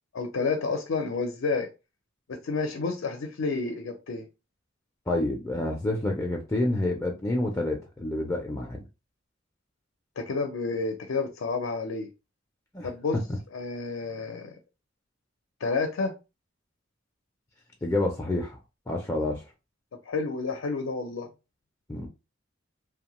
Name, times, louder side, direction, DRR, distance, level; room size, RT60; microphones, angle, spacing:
voice 1, 0.1-1.7 2.3-4.3 10.2-12.1 12.8-13.2 13.5-14.5 15.6-16.1 20.1-21.3, left 4 dB, 80° left, 0.5 m, -30 dB
voice 2, 5.1-8.8 12.7-12.9 17.8-18.6 18.9-19.4 21.9-22.1, left 2 dB, 15° left, 0.4 m, -28 dB
2.7 x 2.2 x 2.9 m
head